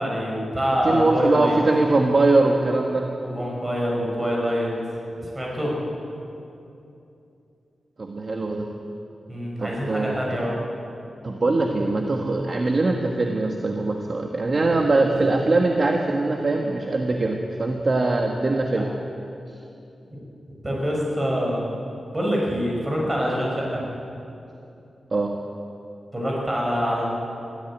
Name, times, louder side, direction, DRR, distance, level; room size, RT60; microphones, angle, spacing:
voice 1, 0.0-1.6 3.2-4.7 5.2-5.8 9.3-10.5 20.1-20.2 20.6-21.7 22.1-23.9 26.1-27.1, equal, 20° right, -3 dB, 5.8 m, -25 dB
voice 2, 0.8-3.1 8.0-8.7 9.6-10.2 11.2-18.9 25.1-25.3, right 2 dB, 40° right, 2 dB, 1.4 m, -22 dB
22.0 x 14.5 x 9.0 m, 2.7 s
wide cardioid pair, 145°, 0 cm